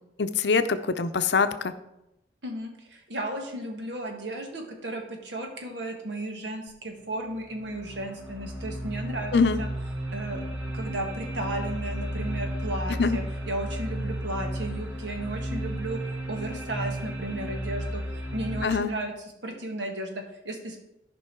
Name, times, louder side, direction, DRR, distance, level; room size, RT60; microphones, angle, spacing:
voice 1, 0.2-1.7 9.3-9.6 13.0-13.2 18.6-18.9, left 4 dB, 70° left, 11 dB, 0.6 m, -23 dB
voice 2, 2.4-9.7 10.1-10.4 10.7-16.0 16.3-18.0 18.3-19.1 19.4-20.8, right 1 dB, 80° right, 3 dB, 1.7 m, -34 dB
sound 1, 6.7-6.8 7.3-18.7, right 1 dB, 10° right, 1.3 m, -33 dB
14.0 x 5.4 x 4.5 m, 0.88 s
head